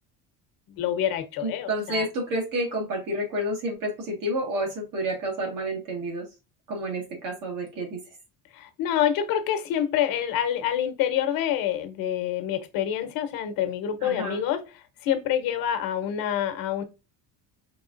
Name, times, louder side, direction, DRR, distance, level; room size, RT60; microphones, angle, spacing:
voice 1, 0.7-2.0 8.5-14.6 15.0-16.8, left 10 dB, 70° left, 1.0 m, -27 dB
voice 2, 1.4-6.3 6.7-8.0 14.0-14.4, right 1 dB, 60° right, 1.7 m, -29 dB
4.8 x 3.5 x 2.5 m
cardioid pair, 180°, 36 cm